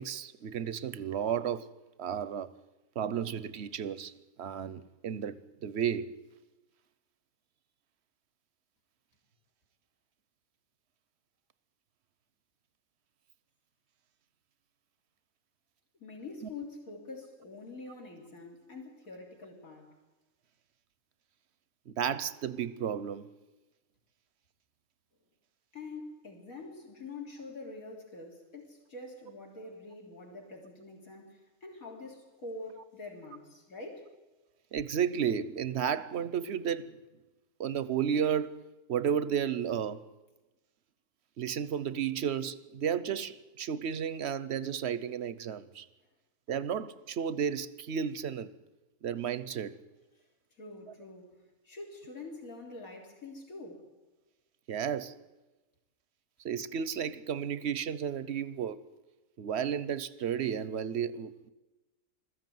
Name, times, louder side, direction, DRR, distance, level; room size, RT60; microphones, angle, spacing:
voice 1, 0.0-1.7 2.0-2.5 3.0-4.1 4.4-6.1 21.9-23.3 34.7-36.9 37.6-38.6 38.9-40.0 41.4-45.9 46.5-48.5 49.0-49.8 54.7-55.1 56.4-58.8 59.4-61.5, right 8 dB, 55° right, 1.0 m, -33 dB
voice 2, 16.0-20.0 25.7-34.1 50.6-53.9, left 3 dB, 70° left, 3.9 m, -45 dB
21.0 x 14.0 x 9.3 m
omnidirectional pair, 1.5 m